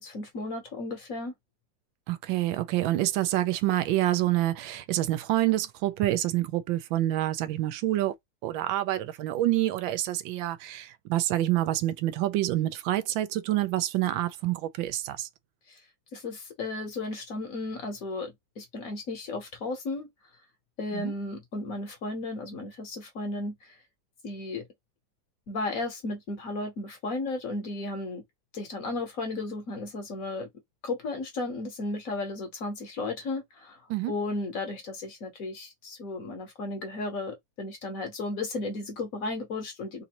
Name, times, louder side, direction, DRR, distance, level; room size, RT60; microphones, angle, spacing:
voice 1, 0.0-1.3 15.7-15.8 16.1-20.1 20.8-23.7 24.2-24.6 25.5-28.2 28.5-30.5 30.8-33.8 34.1-40.0, left 2 dB, 55° left, 1.1 m, -34 dB
voice 2, 2.1-8.1 8.4-15.3 20.9-21.1 33.9-34.1, right 14 dB, 85° right, 1.4 m, -27 dB
4.0 x 2.5 x 2.9 m
omnidirectional pair, 2.1 m